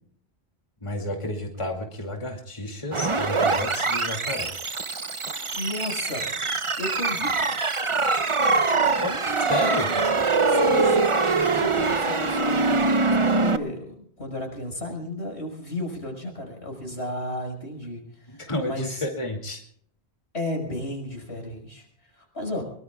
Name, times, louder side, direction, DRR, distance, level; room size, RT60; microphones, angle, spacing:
voice 1, 0.8-4.5 8.5-9.1 9.5-9.9 18.3-19.6, left 1 dB, 30° left, 2 dB, 2.5 m, -31 dB
sound 1, 2.9-13.6, right 3 dB, 30° right, 0.9 m, -23 dB
voice 2, 5.1-6.3 6.8-7.6 9.1-19.0 20.3-22.6, left 1 dB, 85° left, 2 dB, 5.9 m, -34 dB
24.0 x 22.5 x 2.3 m, 0.65 s
omnidirectional pair, 1.1 m